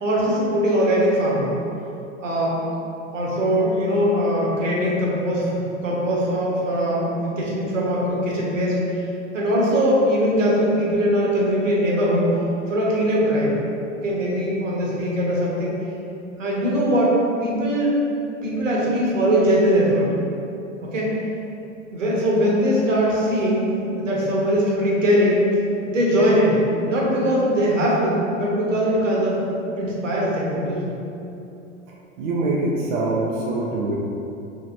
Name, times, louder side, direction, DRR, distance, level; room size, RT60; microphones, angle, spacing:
voice 1, 0.0-1.5 2.2-2.6 3.1-8.8 9.3-12.3 12.7-13.5 14.0-15.8 16.4-18.0 18.4-20.1 20.8-21.1 21.9-25.5 25.9-29.5 29.8-30.9, equal, 70° right, -5 dB, 1.1 m, -21 dB
voice 2, 32.2-33.9, right 2 dB, 40° right, -4 dB, 0.5 m, -24 dB
4.6 x 3.1 x 2.6 m, 2.8 s
figure-of-eight pair, 95°, 39 cm